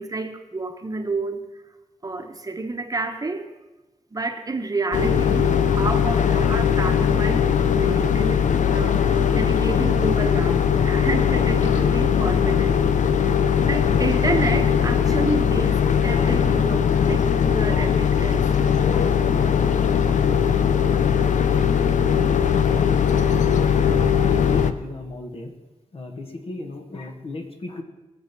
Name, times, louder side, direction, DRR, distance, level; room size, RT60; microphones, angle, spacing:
voice 1, 0.0-1.5 2.0-3.5 4.1-12.8 13.7-18.5, right 3 dB, 30° right, 5 dB, 1.2 m, -29 dB
sound 1, 4.9-24.7, left 7 dB, 80° left, 0.7 m, -20 dB
voice 2, 23.8-25.5 25.9-27.8, left 2 dB, 50° left, 3 dB, 2.0 m, -35 dB
20.0 x 7.4 x 6.1 m, 1.1 s
wide cardioid pair, 115°, 12 cm